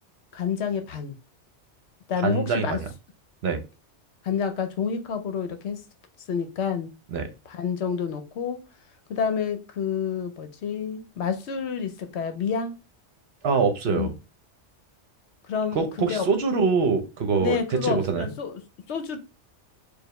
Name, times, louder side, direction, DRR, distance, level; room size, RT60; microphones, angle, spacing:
voice 1, 0.3-1.1 2.1-2.8 4.2-5.8 6.3-6.9 7.5-8.6 9.1-12.8 13.9-14.1 15.5-16.3 17.4-18.6 18.9-19.2, left 6 dB, 70° left, 0.9 m, -28 dB
voice 2, 2.2-2.9 3.4-3.6 7.1-7.3 13.4-14.1 15.7-18.3, right 5 dB, 65° right, 0.9 m, -24 dB
4.8 x 2.4 x 3.1 m
omnidirectional pair, 1.2 m